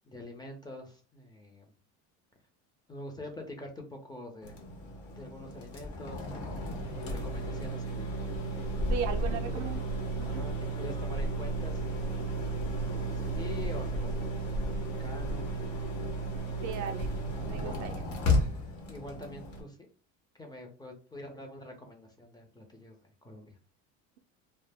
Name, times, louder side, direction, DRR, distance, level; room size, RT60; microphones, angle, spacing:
voice 1, 0.0-1.7 2.9-4.6 5.1-8.1 9.3-9.6 10.3-12.1 12.8-15.4 17.5-18.0 18.9-19.8 20.4-23.6, left 1 dB, 10° left, 0.6 m, -46 dB
sound 1, 4.4-19.6, right 1 dB, 60° left, 1.0 m, -33 dB
voice 2, 8.9-9.8 10.2-10.5 16.6-17.2 17.5-17.9, right 8 dB, 60° right, 0.5 m, -37 dB
2.1 x 2.1 x 3.4 m
supercardioid pair, 115°, 33 cm